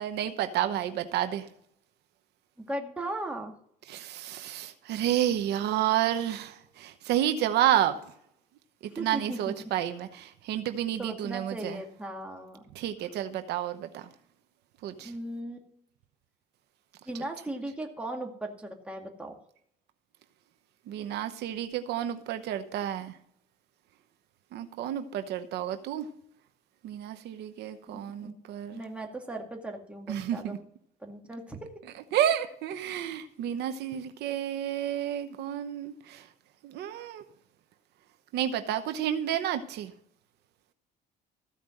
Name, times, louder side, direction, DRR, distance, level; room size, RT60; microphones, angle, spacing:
voice 1, 0.0-1.5 3.9-8.0 8.9-11.8 12.7-14.0 14.8-15.1 20.9-23.2 24.5-26.1 26.8-28.8 30.1-30.6 32.1-36.2 36.6-37.2 38.3-39.9, right 11 dB, 80° right, 8 dB, 0.9 m, -30 dB
voice 2, 2.6-3.5 9.0-9.7 11.0-12.6 15.0-15.7 17.1-19.4 27.9-28.3 28.7-30.6 31.0-31.7, right 1 dB, 5° right, 2 dB, 2.1 m, -37 dB
14.5 x 5.1 x 7.7 m, 0.69 s
cardioid pair, 110°, 17 cm